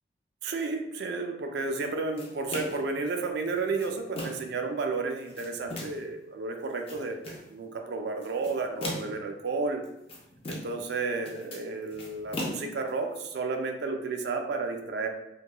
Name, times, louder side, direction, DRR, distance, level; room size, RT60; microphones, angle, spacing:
voice 1, 0.4-9.8 10.5-15.1, right 3 dB, 60° right, 4 dB, 0.3 m, -32 dB
sound 1, 2.2-2.9 3.5-4.6 5.1-6.1 6.6-7.5 8.2-9.3 9.8-10.9 11.1-13.2, left 1 dB, 30° left, 0.4 m, -38 dB
2.8 x 2.2 x 2.2 m, 0.88 s
head